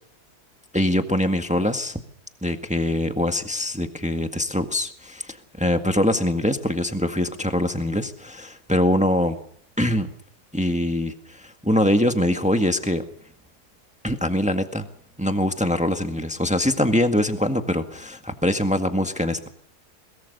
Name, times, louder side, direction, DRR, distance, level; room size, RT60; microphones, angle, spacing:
voice 1, 0.7-2.0 2.4-9.4 9.8-10.1 10.5-13.0 14.0-14.9 15.2-19.5, left 1 dB, 5° right, 6 dB, 1.6 m, -23 dB
22.0 x 22.0 x 6.8 m, 0.64 s
omnidirectional pair, 1.7 m